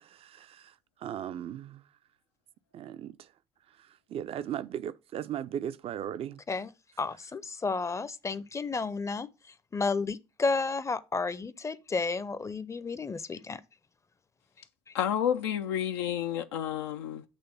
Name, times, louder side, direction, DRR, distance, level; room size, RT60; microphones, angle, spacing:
voice 1, 0.2-0.6 1.0-1.8 2.7-3.2 4.1-6.4, right 10 dB, 45° right, 0.5 m, -36 dB
voice 2, 7.0-9.3 9.7-13.6, left 4 dB, 20° left, 0.6 m, -32 dB
voice 3, 14.9-17.2, left 9 dB, 75° left, 0.4 m, -30 dB
8.1 x 3.1 x 5.7 m
figure-of-eight pair, 55°, 14 cm